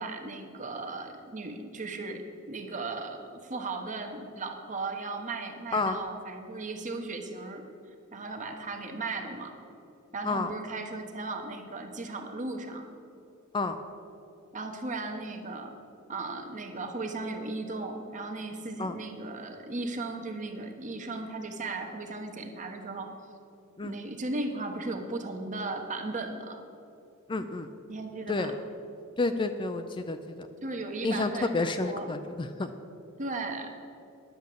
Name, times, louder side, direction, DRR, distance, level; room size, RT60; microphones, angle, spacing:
voice 1, 0.0-7.6 8.1-9.6 10.1-12.8 14.5-15.7 16.1-23.1 23.8-26.6 27.9-28.5 30.6-32.1 33.2-33.7, right 3 dB, 35° right, 4 dB, 1.1 m, -36 dB
voice 2, 27.3-27.7 28.3-28.5 29.2-30.5 31.0-32.7, left 3 dB, 20° left, 8 dB, 0.4 m, -30 dB
10.5 x 7.0 x 7.7 m, 2.7 s
head